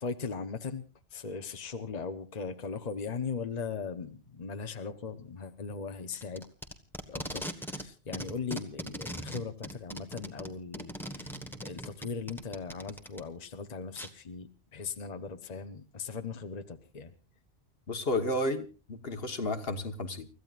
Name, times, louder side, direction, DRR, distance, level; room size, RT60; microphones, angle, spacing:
voice 1, 0.0-6.4 7.1-11.4 11.6-17.1, left 5 dB, 40° left, 7 dB, 1.0 m, -39 dB
Packing tape duct tape, 6.1-7.9 8.1-13.2 14.0-14.1, equal, ahead, 1.3 m, -40 dB
voice 2, 17.9-20.3, left 1 dB, 65° left, 7 dB, 1.6 m, -32 dB
30.0 x 14.5 x 2.5 m, 0.33 s
omnidirectional pair, 1.1 m